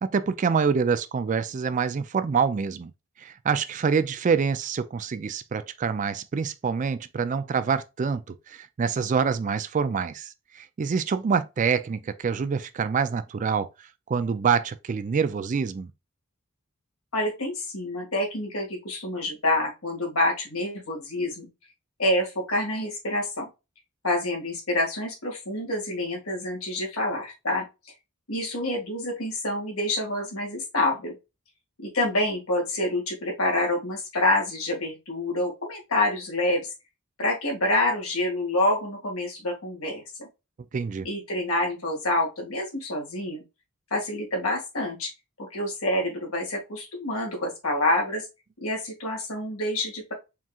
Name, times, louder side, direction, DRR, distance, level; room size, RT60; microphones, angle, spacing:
voice 1, 0.0-2.9 3.2-13.7 14.1-15.9 40.7-41.1, right 6 dB, 35° right, 0.3 m, -26 dB
voice 2, 17.1-21.5 22.0-23.5 24.0-27.9 28.3-31.2 31.8-36.7 37.2-40.3 41.0-43.4 43.9-45.1 45.4-48.3 48.6-50.1, left 1 dB, 75° left, 1.9 m, -27 dB
4.4 x 3.6 x 2.3 m
head